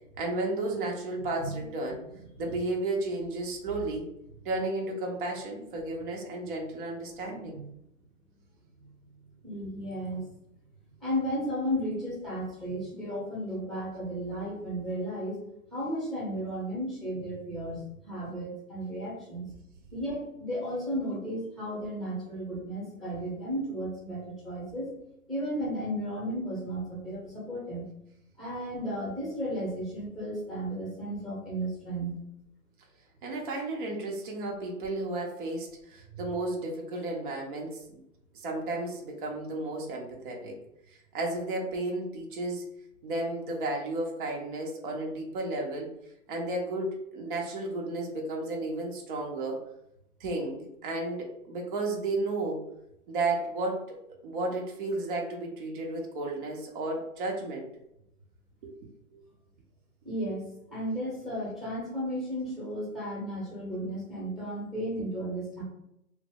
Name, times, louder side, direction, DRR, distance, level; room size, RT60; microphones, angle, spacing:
voice 1, 0.2-2.0 2.4-4.1 4.4-7.6 33.2-38.0 38.3-40.6 40.9-42.6 43.0-45.9 46.3-49.6 50.2-52.6 53.1-54.0 54.2-57.7 58.6-58.7 59.1-59.2, right 2 dB, 35° right, -1 dB, 0.6 m, -33 dB
voice 2, 1.4-1.9 7.5-7.7 9.4-10.2 11.0-15.4 15.7-19.4 19.9-24.9 25.3-27.9 28.4-32.1 60.0-65.6, equal, ahead, -8 dB, 0.8 m, -34 dB
2.8 x 2.0 x 3.4 m, 0.81 s
hypercardioid pair, 145°, 45 cm